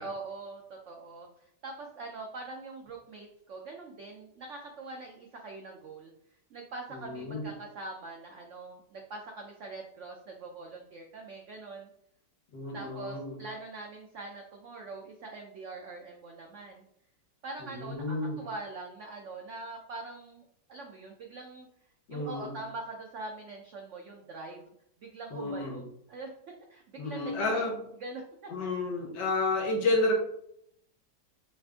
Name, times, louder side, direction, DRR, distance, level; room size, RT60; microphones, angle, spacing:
voice 1, 0.0-6.1 6.5-11.9 12.7-16.8 17.4-21.7 22.1-24.7 25.0-25.8 26.1-26.3 26.7-27.6 28.0-28.7, right 3 dB, 85° right, 2 dB, 0.6 m, -43 dB
voice 2, 6.9-7.5 12.5-13.4 17.8-18.4 22.1-22.5 25.3-25.8 27.0-27.8 28.5-30.1, left 2 dB, 70° left, 1 dB, 1.6 m, -31 dB
5.3 x 2.5 x 3.4 m, 0.73 s
omnidirectional pair, 2.0 m